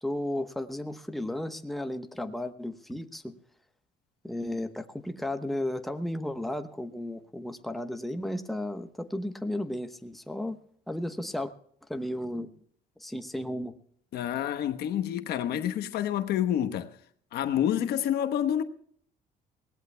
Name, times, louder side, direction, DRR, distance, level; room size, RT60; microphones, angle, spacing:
voice 1, 0.0-3.3 4.2-10.6 10.9-11.5 11.9-12.5 13.0-13.7, left 1 dB, ahead, 1.0 m, -34 dB
voice 2, 14.1-17.0 17.3-18.6, left 10 dB, 70° left, 1.1 m, -28 dB
22.5 x 17.5 x 2.2 m
cardioid pair, 110°, 17 cm